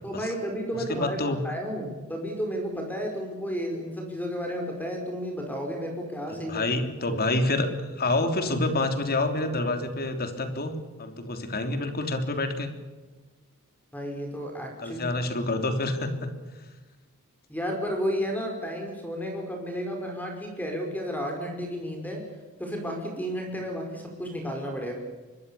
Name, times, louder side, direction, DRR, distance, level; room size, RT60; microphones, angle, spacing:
voice 1, 0.0-6.7 7.0-7.2 13.9-15.0 17.5-22.2 22.6-24.9, equal, 10° left, 2 dB, 5.0 m, -32 dB
voice 2, 0.7-1.4 6.5-7.7 8.0-10.7 11.0-12.7 14.8-16.3, left 2 dB, 45° left, 7 dB, 3.3 m, -27 dB
25.0 x 23.0 x 7.1 m, 1.3 s
head